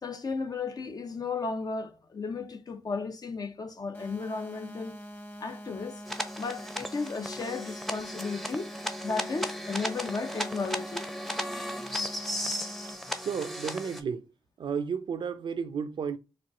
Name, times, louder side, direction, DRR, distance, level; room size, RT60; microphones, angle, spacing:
voice 1, 0.0-5.0 5.4-6.0 6.4-8.7 9.0-11.0, left 4 dB, 50° left, 0.8 m, -34 dB
sound 1, 3.9-12.9, equal, 20° left, 1.1 m, -44 dB
sound 2, 6.1-14.0, equal, ahead, 0.8 m, -36 dB
voice 2, 13.2-14.3 14.6-16.2, right 6 dB, 65° right, 0.6 m, -33 dB
4.4 x 2.6 x 3.7 m
supercardioid pair, 45°, 9 cm